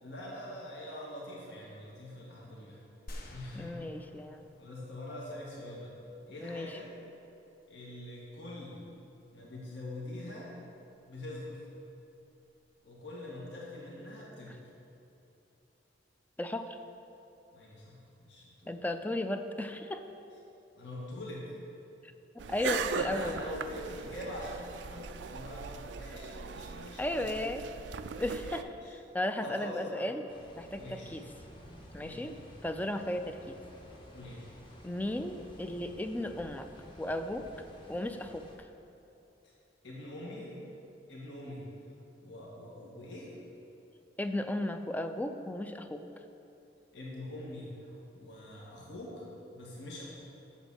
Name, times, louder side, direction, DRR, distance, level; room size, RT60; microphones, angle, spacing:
voice 1, 0.0-2.8 3.3-3.9 4.6-5.9 6.3-6.9 7.7-8.8 9.3-10.5 11.1-11.7 12.8-14.6 17.5-18.7 20.8-21.5 22.9-27.6 28.5-28.9 29.4-30.1 30.8-31.1 31.9-32.3 34.1-34.5 39.4-39.5 39.8-40.6 41.1-41.7 42.2-43.3 46.9-49.3 49.5-50.0, left 1 dB, 70° left, -5 dB, 1.7 m, -44 dB
sound 1, 3.1-5.3, equal, 55° left, 1.0 m, -48 dB
voice 2, 3.5-4.4 6.4-6.7 16.4-16.8 18.7-20.0 22.5-23.4 27.0-27.6 28.2-30.2 30.6-31.2 31.9-33.6 34.8-36.7 37.0-37.5 37.9-38.4 44.2-46.0, left 1 dB, 10° left, 8 dB, 0.4 m, -35 dB
sound 2, 22.4-28.6, right 5 dB, 70° right, 0.4 m, -39 dB
sound 3, 30.3-38.6, equal, 25° left, 1.1 m, -53 dB
8.1 x 7.2 x 6.3 m, 2.8 s
head